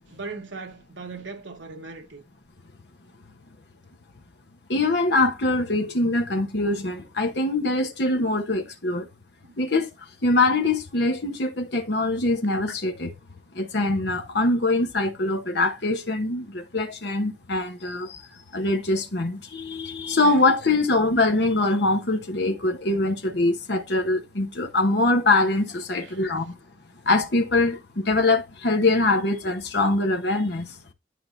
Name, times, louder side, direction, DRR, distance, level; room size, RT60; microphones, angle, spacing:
voice 1, 0.1-2.2 9.4-9.6 26.0-26.2, right 4 dB, 80° right, 1.2 m, -38 dB
voice 2, 4.7-9.1 9.6-9.9 10.2-13.1 13.5-18.2 18.5-26.5 27.1-30.7, left 2 dB, 65° left, 1.1 m, -23 dB
11.0 x 4.7 x 2.7 m
head